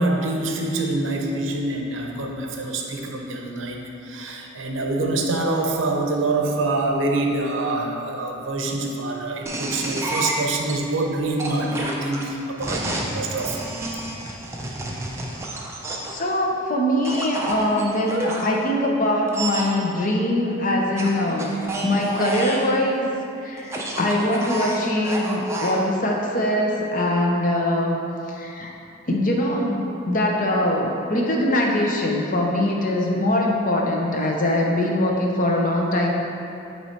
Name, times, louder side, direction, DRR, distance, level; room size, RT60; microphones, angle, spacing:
voice 1, 0.0-13.7, right 2 dB, 65° right, 1 dB, 0.7 m, -25 dB
sound 1, 9.5-10.7 11.4-16.2 17.0-18.4 19.3-19.7 21.0-22.7 23.6-25.8, right 1 dB, 15° right, 0.5 m, -29 dB
voice 2, 16.1-21.5 21.8-23.1 23.4-28.0 28.3-28.7 29.1-36.1, left 1 dB, 40° left, -1 dB, 0.7 m, -22 dB
8.1 x 3.1 x 4.4 m, 2.7 s
head